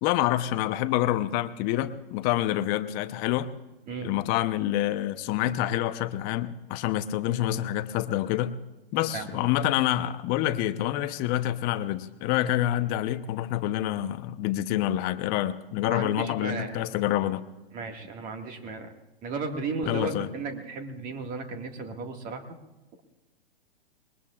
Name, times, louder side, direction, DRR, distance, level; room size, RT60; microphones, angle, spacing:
voice 1, 0.0-3.5 4.0-8.6 8.9-17.4 19.9-20.3, left 13 dB, 30° left, 11 dB, 0.8 m, -27 dB
voice 2, 3.9-4.3 9.1-9.5 15.9-16.8 17.7-18.9 19.2-22.4, right 4 dB, 25° right, 5 dB, 1.9 m, -35 dB
26.0 x 21.5 x 2.5 m, 1.1 s
hypercardioid pair, 125°, 31 cm